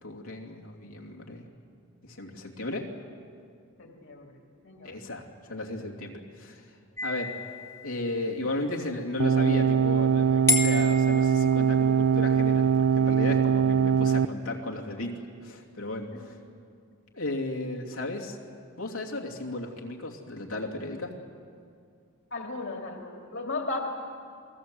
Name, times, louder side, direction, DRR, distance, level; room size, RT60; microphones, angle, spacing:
voice 1, 0.0-1.5 2.0-2.9 4.8-6.7 7.0-7.3 7.8-16.4 17.1-18.4 18.8-21.1, left 2 dB, 85° left, -1 dB, 2.9 m, -35 dB
voice 2, 3.8-5.0 16.1-16.2 22.3-23.8, left 3 dB, 55° left, 1 dB, 2.5 m, -36 dB
sound 1, 7.0-8.5 10.5-12.1, left 3 dB, 10° left, 1.7 m, -31 dB
sound 2, 9.2-14.3, right 7 dB, 85° right, 0.5 m, -22 dB
29.0 x 20.0 x 7.9 m, 2.3 s
head